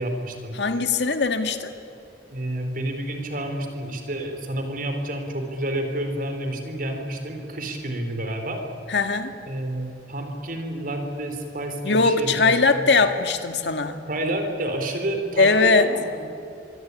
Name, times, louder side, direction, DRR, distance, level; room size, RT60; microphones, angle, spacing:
voice 1, 0.0-0.6 2.3-8.6 9.5-12.8 14.1-16.3, right 1 dB, 50° right, 5 dB, 4.3 m, -29 dB
voice 2, 0.6-1.7 8.9-9.3 11.8-14.0 15.4-15.9, left 4 dB, 75° left, 7 dB, 2.0 m, -20 dB
25.0 x 24.0 x 9.8 m, 2.6 s
head